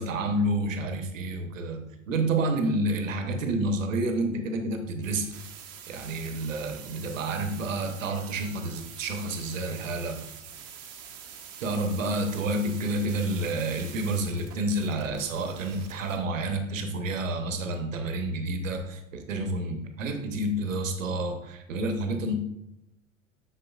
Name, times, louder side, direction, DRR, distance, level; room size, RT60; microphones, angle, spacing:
voice 1, 0.0-5.3 5.9-10.3 11.6-22.3, right 2 dB, 70° right, 6 dB, 1.0 m, -29 dB
sound 1, 5.0-16.1, right 8 dB, 35° right, 1.0 m, -45 dB
7.7 x 6.4 x 2.4 m, 0.88 s
figure-of-eight pair, 80°, 40 cm